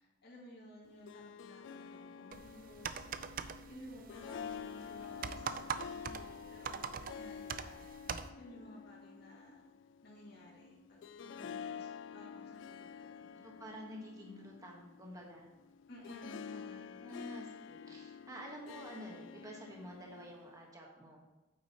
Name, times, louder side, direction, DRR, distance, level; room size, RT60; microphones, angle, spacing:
voice 1, 0.0-3.3 3.7-7.8 8.4-9.7 10.0-11.9 12.1-13.5 15.9-16.9, left 1 dB, 60° left, -5 dB, 2.2 m, -55 dB
Harp, 0.8-20.7, left 7 dB, 80° left, 0.3 m, -49 dB
sound 1, 2.3-8.3, right 6 dB, 50° right, 0.4 m, -43 dB
voice 2, 13.4-15.5 17.0-21.2, equal, 20° right, -1 dB, 1.3 m, -49 dB
9.0 x 8.5 x 3.0 m, 1.1 s
head